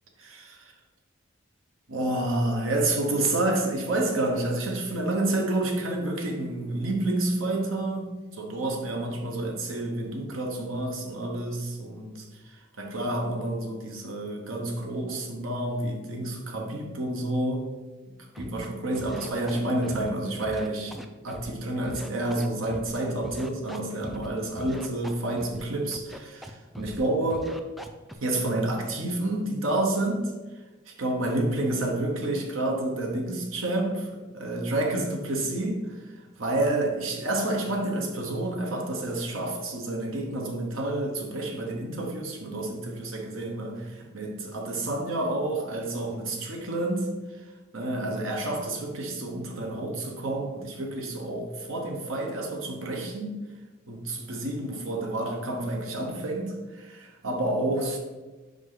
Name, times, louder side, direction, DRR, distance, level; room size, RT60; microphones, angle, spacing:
voice 1, 0.2-0.7 1.9-17.7 18.4-27.5 28.2-30.3 30.9-36.1 36.4-53.4 53.9-58.0, right 1 dB, 85° right, 1 dB, 1.1 m, -29 dB
Scratching (performance technique), 18.3-18.7 18.9-20.1 20.4-21.5 21.8-22.9 23.2-24.3 24.6-25.6 25.9-26.5 26.7-27.0 27.3-28.1, equal, ahead, 0.3 m, -40 dB
5.3 x 5.0 x 3.9 m, 1.2 s
head